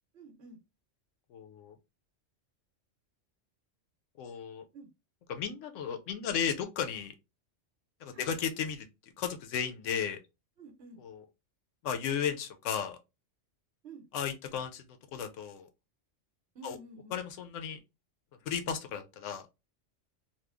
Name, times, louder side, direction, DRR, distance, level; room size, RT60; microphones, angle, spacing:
voice 1, 0.1-0.6 4.7-4.9 8.1-8.3 10.6-11.0 13.8-14.0 16.5-17.2, right 3 dB, 65° right, 1.0 m, -50 dB
voice 2, 1.3-1.8 4.2-4.6 5.3-7.1 8.0-8.9 9.2-10.2 11.0-11.2 11.8-13.0 14.1-14.8 15.1-15.7 16.6-16.8 17.1-17.8 18.4-19.5, left 7 dB, 85° left, 0.9 m, -34 dB
3.0 x 2.1 x 3.3 m
omnidirectional pair, 1.2 m